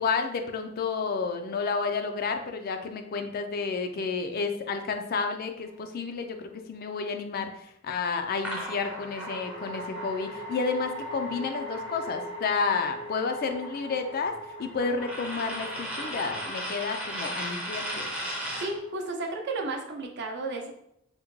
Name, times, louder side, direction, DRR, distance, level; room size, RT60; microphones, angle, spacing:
voice 1, 0.0-14.3 14.6-18.1, left 4 dB, 50° left, 6 dB, 0.3 m, -31 dB
sound 1, 5.6-6.3 8.7-20.1, equal, 90° left, 0.9 m, -42 dB
sound 2, 8.4-12.5 12.8-18.8, equal, 5° right, 0.5 m, -37 dB
voice 2, 18.6-20.7, right 2 dB, 60° right, 3 dB, 0.5 m, -33 dB
3.5 x 2.1 x 3.0 m, 0.75 s
head